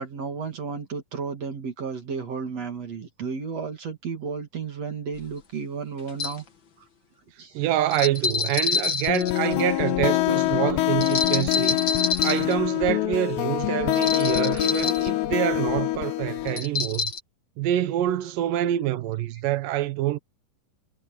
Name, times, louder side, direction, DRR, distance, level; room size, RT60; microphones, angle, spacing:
voice 1, 0.0-6.4 7.4-7.6 14.5-14.6, right 5 dB, 45° right, 2.6 m, -33 dB
sound 1, 5.2-5.3 6.1-6.4 7.9-9.7 11.0-12.5 13.9-15.1 16.5-17.2, left 5 dB, 55° left, 1.3 m, -27 dB
voice 2, 7.5-11.8 12.2-17.1 17.6-20.2, right 13 dB, 75° right, 2.0 m, -26 dB
sound 2, 9.1-16.6, left 17 dB, 75° left, 2.8 m, -25 dB
omnidirectional pair, 5.4 m